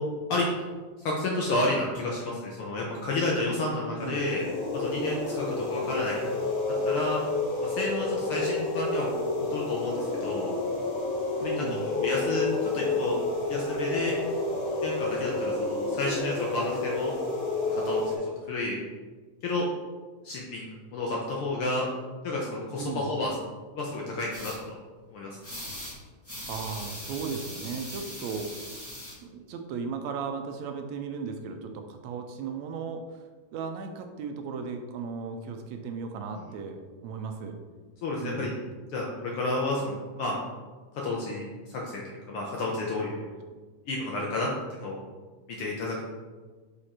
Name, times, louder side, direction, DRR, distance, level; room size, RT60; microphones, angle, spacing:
voice 1, 1.0-4.5 4.7-6.2 6.8-7.2 7.6-9.1 9.5-10.5 11.4-11.6 12.0-13.2 13.5-14.1 14.8-17.1 17.7-18.1 18.5-18.8 19.4-19.7 20.2-21.8 22.2-23.3 23.7-24.7 25.1-25.4 38.0-38.5 38.9-40.4 41.0-43.2 43.9-45.0 45.6-46.0, left 2 dB, 75° left, -2 dB, 1.2 m, -30 dB
voice 2, 3.9-4.2 11.4-11.9 22.8-23.1 26.5-28.5 29.2-33.2 33.5-37.6 38.2-38.6, right 5 dB, 80° right, 5 dB, 1.8 m, -36 dB
sound 1, 4.0-18.2, left 2 dB, 40° left, 2.2 m, -30 dB
sound 2, 24.3-24.6 25.4-25.9 26.2-29.1, equal, 10° left, 0.9 m, -40 dB
5.0 x 5.0 x 4.2 m, 1.4 s
omnidirectional pair, 3.4 m